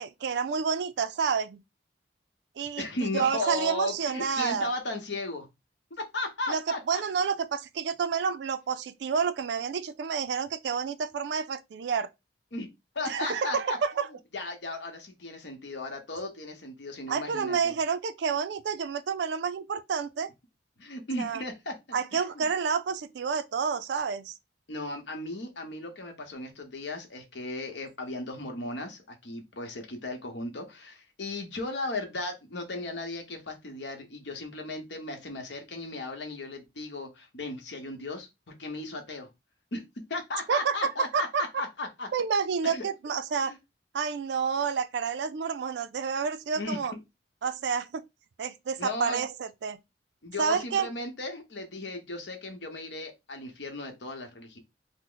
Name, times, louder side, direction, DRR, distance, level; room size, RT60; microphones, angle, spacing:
voice 1, 0.0-1.6 2.6-4.7 6.5-6.6 6.9-12.1 13.1-14.1 17.1-20.3 21.2-21.4 21.9-24.3 40.5-41.4 42.1-43.6 43.9-46.9 47.4-48.0 48.4-49.8 50.4-50.9, right 6 dB, 70° right, 0.3 m, -29 dB
voice 2, 2.8-5.5 6.0-7.0 12.5-12.7 12.9-13.8 14.3-17.7 20.8-21.7 22.1-22.5 24.7-38.3 38.6-39.3 39.7-39.8 40.1-42.1 42.6-42.8 43.5-43.6 46.6-46.8 48.8-49.2 50.2-54.6, left 2 dB, 75° left, 0.9 m, -36 dB
3.0 x 2.0 x 3.8 m
head